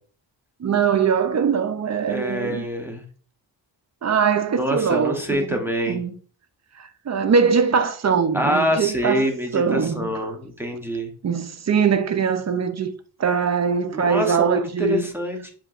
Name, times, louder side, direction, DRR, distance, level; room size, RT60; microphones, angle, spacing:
voice 1, 0.6-2.7 4.0-5.6 5.9-6.1 6.8-9.3 9.5-10.3 11.2-12.9 13.2-15.1, right 6 dB, 35° right, 0.5 m, -22 dB
voice 2, 2.0-3.0 4.6-6.0 8.3-11.1 13.9-15.4, equal, 5° right, 0.8 m, -25 dB
7.2 x 2.8 x 2.4 m
cardioid pair, 100°, 46 cm